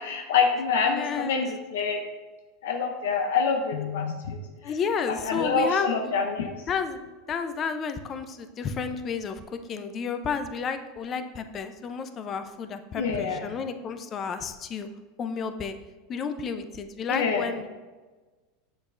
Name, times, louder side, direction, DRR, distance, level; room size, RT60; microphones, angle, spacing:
voice 1, 0.0-2.0 2.6-4.4 5.1-6.6 12.9-13.4 17.1-17.5, left 5 dB, 80° left, 4 dB, 0.6 m, -26 dB
voice 2, 0.8-1.5 4.6-6.1 6.7-7.0 7.3-9.4 9.7-14.9 15.2-15.8 16.1-17.7, left 6 dB, 35° left, 9 dB, 0.6 m, -31 dB
7.1 x 6.1 x 2.6 m, 1.3 s
hypercardioid pair, 110°, 0 cm